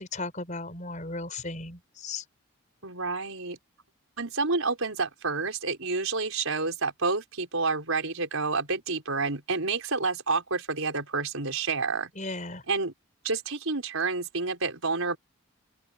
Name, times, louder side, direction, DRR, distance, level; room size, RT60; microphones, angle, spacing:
voice 1, 0.0-2.2 12.2-12.6, left 3 dB, 35° left, 4.6 m, -36 dB
voice 2, 2.8-3.6 4.2-12.1 12.7-12.9 13.2-15.2, right 4 dB, 75° right, 4.9 m, -29 dB
head